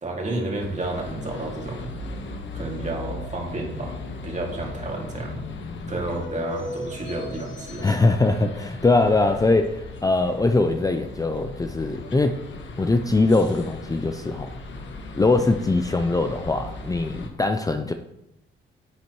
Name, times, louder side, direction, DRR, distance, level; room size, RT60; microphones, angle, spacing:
voice 1, 0.0-1.9 2.5-4.0 4.2-5.4 5.9-7.9, right 2 dB, 35° right, -1 dB, 2.4 m, -31 dB
sound 1, 0.6-17.3, left 3 dB, 65° left, 1.3 m, -37 dB
voice 2, 7.8-12.4 12.8-14.5 15.2-17.9, left 3 dB, 15° left, 7 dB, 0.5 m, -22 dB
9.9 x 8.5 x 3.1 m, 0.87 s
cardioid pair, 85°, 21 cm